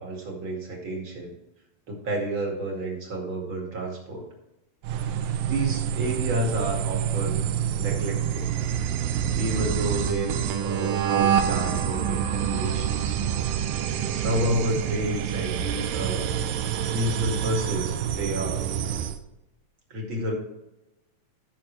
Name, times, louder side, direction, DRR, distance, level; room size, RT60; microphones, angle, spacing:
voice 1, 0.0-1.3 1.9-4.3 5.4-7.5 7.8-8.5 9.1-13.2 13.8-16.3 16.9-18.7 19.9-20.3, right 1 dB, 40° right, 0 dB, 2.5 m, -30 dB
sound 1, 4.8-19.2, right 9 dB, 80° right, 2.4 m, -27 dB
15.0 x 6.6 x 3.3 m, 0.94 s
omnidirectional pair, 4.0 m